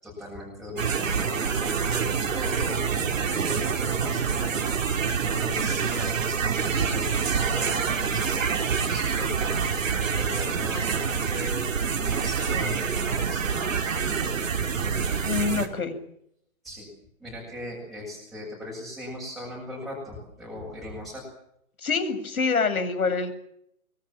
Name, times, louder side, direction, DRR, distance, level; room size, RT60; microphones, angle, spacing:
voice 1, 0.0-4.6 5.2-14.0 14.8-15.6 16.6-16.9 17.2-21.3, left 1 dB, ahead, -5 dB, 7.6 m, -39 dB
sound 1, 0.8-15.7, right 6 dB, 60° right, 4.3 m, -26 dB
voice 2, 15.2-16.0 21.8-23.3, left 4 dB, 75° left, 10 dB, 7.7 m, -26 dB
25.0 x 25.0 x 7.6 m, 0.73 s
hypercardioid pair, 170°, 43 cm